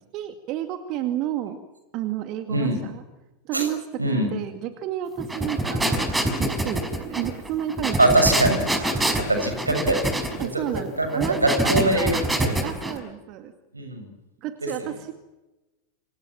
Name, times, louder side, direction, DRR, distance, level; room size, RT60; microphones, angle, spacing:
voice 1, 0.1-1.6 1.9-3.0 3.4-5.9 6.3-8.5 10.4-12.2 12.6-13.5 14.4-15.1, right 11 dB, 40° right, 8 dB, 2.3 m, -31 dB
sound 1, 5.2-13.0, right 1 dB, 10° right, 5.4 m, -26 dB
voice 2, 8.0-8.6 9.3-10.1 10.4-12.6 13.7-14.1 14.8-14.9, right 1 dB, 80° right, 6 dB, 7.2 m, -22 dB
28.0 x 27.5 x 7.5 m, 1.0 s
figure-of-eight pair, 90°, 0 cm